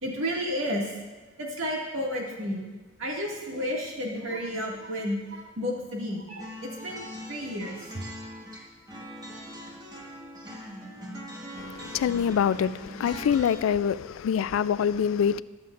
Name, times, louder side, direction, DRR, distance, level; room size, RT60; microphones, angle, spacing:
voice 1, 0.0-0.9 1.4-2.6 3.0-7.9, equal, 85° right, 2.1 m, -32 dB
sound 1, 6.4-13.6, equal, 20° right, 1.3 m, -42 dB
voice 2, 11.6-15.4, left 8 dB, 90° left, 0.3 m, -25 dB
20.5 x 7.2 x 2.5 m
head